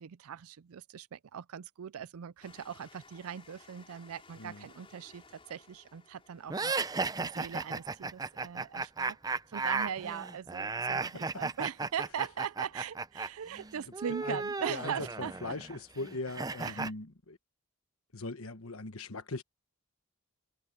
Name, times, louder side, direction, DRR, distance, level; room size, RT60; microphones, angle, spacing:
voice 1, 0.0-15.6 16.6-16.9, right 8 dB, 75° right, 0.4 m, -40 dB
Train, 2.4-13.6 14.3-14.4 14.6-14.7, left 4 dB, 25° left, 5.3 m, -61 dB
sound 1, 6.5-13.3 13.5-16.9, right 4 dB, 15° right, 0.5 m, -35 dB
voice 2, 14.7-17.4 18.1-19.4, left 2 dB, 70° left, 1.3 m, -40 dB
head